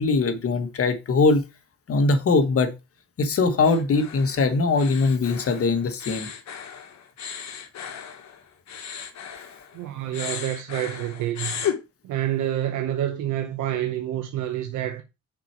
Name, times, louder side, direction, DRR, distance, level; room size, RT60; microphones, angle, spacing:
voice 1, 0.0-1.4 1.9-2.7 3.2-6.3, left 3 dB, 50° left, 1.4 m, -21 dB
sound 1, 3.6-9.8 10.1-11.8, left 8 dB, 65° left, 1.4 m, -35 dB
voice 2, 9.7-11.6 12.0-15.0, right 12 dB, 90° right, 0.8 m, -28 dB
5.9 x 4.6 x 4.6 m
cardioid pair, 90°, 30 cm